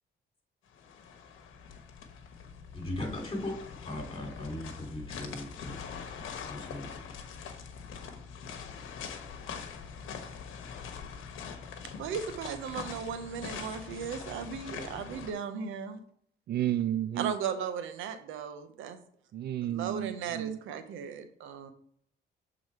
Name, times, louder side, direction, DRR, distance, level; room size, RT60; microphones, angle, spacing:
sound 1, 0.7-15.3, left 6 dB, 80° left, 1.1 m, -43 dB
voice 1, 2.7-3.6 3.9-5.8 6.5-7.0, left 1 dB, 25° left, 1 dB, 2.9 m, -38 dB
voice 2, 12.0-16.0 17.2-19.0 19.7-21.7, right 7 dB, 90° right, 9 dB, 0.8 m, -36 dB
voice 3, 16.5-17.3 19.3-20.6, right 12 dB, 55° right, 14 dB, 0.4 m, -32 dB
7.5 x 3.9 x 4.6 m, 0.63 s
cardioid pair, 90°, 20 cm